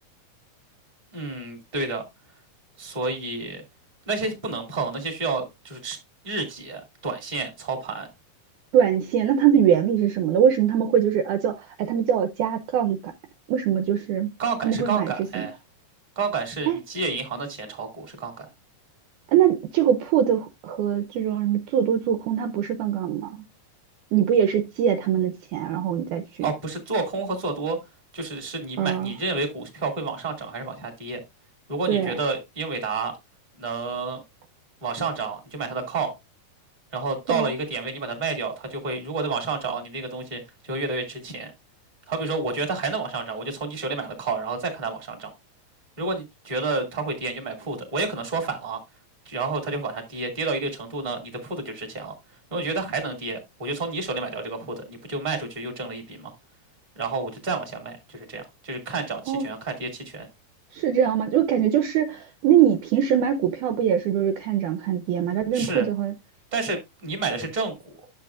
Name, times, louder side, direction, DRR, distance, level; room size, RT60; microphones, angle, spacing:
voice 1, 1.1-2.0 2.8-3.6 4.1-6.0 6.2-8.1 14.4-15.6 16.2-18.5 26.4-27.8 28.1-31.2 31.7-33.1 33.6-34.2 34.8-36.1 36.9-41.5 42.1-45.3 46.0-48.8 49.3-52.1 52.5-56.3 57.0-60.3 65.5-65.9 66.5-68.0, right 3 dB, 15° right, 1.7 m, -30 dB
voice 2, 8.7-13.1 13.5-14.3 14.6-15.4 16.7-16.8 19.3-23.3 24.1-26.2 28.8-29.1 31.9-32.1 37.3-37.5 59.3-59.5 60.7-66.1, right 9 dB, 75° right, 2.0 m, -22 dB
10.5 x 7.4 x 2.4 m
omnidirectional pair, 4.0 m